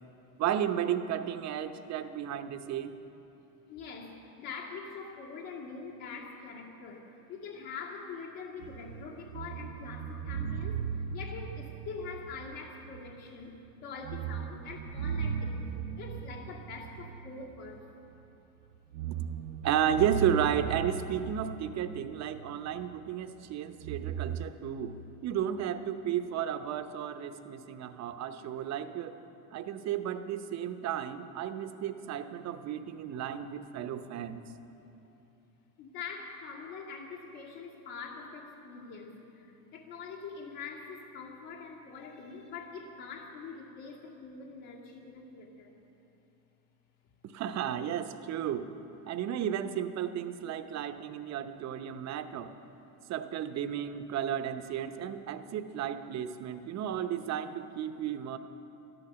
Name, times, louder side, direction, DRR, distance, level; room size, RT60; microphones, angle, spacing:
voice 1, 0.4-2.9 19.6-29.2 29.5-34.4 47.2-48.7 49.1-52.5 53.1-58.4, right 9 dB, 35° right, 10 dB, 0.8 m, -33 dB
voice 2, 3.7-17.9 35.8-45.8, left 5 dB, 60° left, -3 dB, 2.5 m, -44 dB
sound 1, 8.6-13.3 13.5-13.7 14.0-18.2 18.7-23.0 23.8-24.5, right 7 dB, 75° right, 0.7 m, -37 dB
12.5 x 12.0 x 6.9 m, 3.0 s
supercardioid pair, 110°, 46 cm